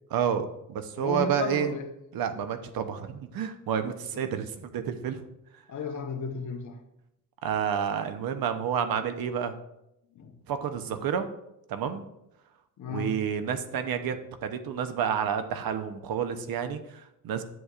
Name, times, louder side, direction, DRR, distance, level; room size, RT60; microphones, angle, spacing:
voice 1, 0.1-1.7 2.1-5.2 7.4-9.5 10.5-11.3 11.7-12.1 12.9-17.4, right 8 dB, 80° right, 8 dB, 0.8 m, -30 dB
voice 2, 1.0-1.9 4.1-4.2 5.7-6.8 10.1-10.4 12.8-13.2, left 5 dB, 60° left, 4 dB, 1.1 m, -34 dB
11.0 x 8.1 x 2.5 m, 0.83 s
cardioid pair, 130°, 35 cm